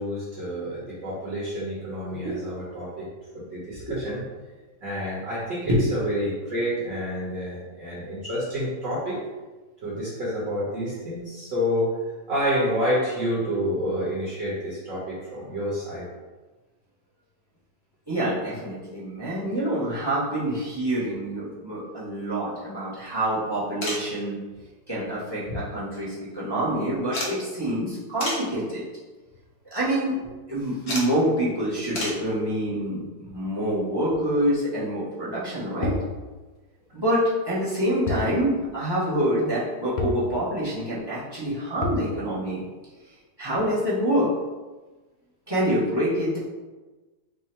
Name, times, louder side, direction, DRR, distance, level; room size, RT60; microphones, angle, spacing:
voice 1, 0.0-3.1 3.3-4.2 4.8-9.2 9.8-11.9 12.3-16.1, equal, 50° right, -8 dB, 1.2 m, -28 dB
voice 2, 2.1-2.4 3.9-4.0 5.6-5.9 18.1-24.4 24.9-28.8 29.7-35.9 36.9-42.6 43.4-44.3 45.5-46.4, right 1 dB, 30° right, -7 dB, 0.5 m, -26 dB
sound 1, 23.8-24.1 25.4-26.0 26.3-26.4 27.1-27.4 28.2-28.5 29.2-29.4 30.9-31.1 31.9-32.2 33.9-34.0 35.4-35.5 35.7-35.8, left 1 dB, 50° left, 0.9 m, -31 dB
sound 2, 35.8-36.1 38.1-38.3 38.7-38.8 40.0-40.3 41.8-42.1, left 4 dB, 80° left, 1.2 m, -29 dB
3.6 x 2.1 x 4.2 m, 1.2 s
omnidirectional pair, 1.9 m